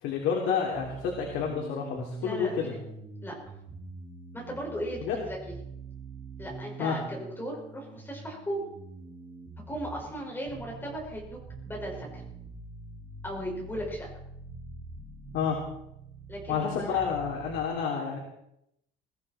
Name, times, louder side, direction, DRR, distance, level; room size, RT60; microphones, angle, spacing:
voice 1, 0.0-2.7 5.1-5.2 6.8-7.0 15.3-15.6 16.5-18.2, left 7 dB, 80° left, 0 dB, 3.4 m, -29 dB
sound 1, 0.7-17.7, right 4 dB, 20° right, 4.8 m, -45 dB
voice 2, 2.2-2.8 3.2-3.3 4.3-5.5 6.4-8.6 9.7-11.4 11.6-12.2 13.2-14.1 16.3-17.1, equal, 10° left, -2 dB, 5.6 m, -37 dB
22.0 x 15.0 x 4.4 m, 0.79 s
cardioid pair, 180°, 18 cm